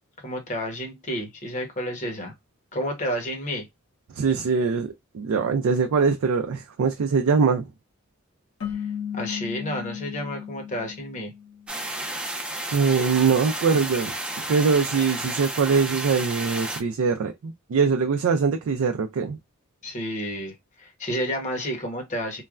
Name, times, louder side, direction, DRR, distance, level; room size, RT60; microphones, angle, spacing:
voice 1, 0.2-2.3 2.7-3.7 8.7-8.8 9.1-11.3 19.8-22.4, equal, 35° left, 0.9 m, -31 dB
voice 2, 4.1-7.7 12.7-14.1 14.5-19.4, right 5 dB, 80° right, 0.4 m, -22 dB
sound 1, 8.6-11.9, left 8 dB, 85° left, 1.2 m, -35 dB
sound 2, 11.7-16.8, right 1 dB, 5° right, 0.5 m, -32 dB
3.1 x 2.1 x 2.3 m
head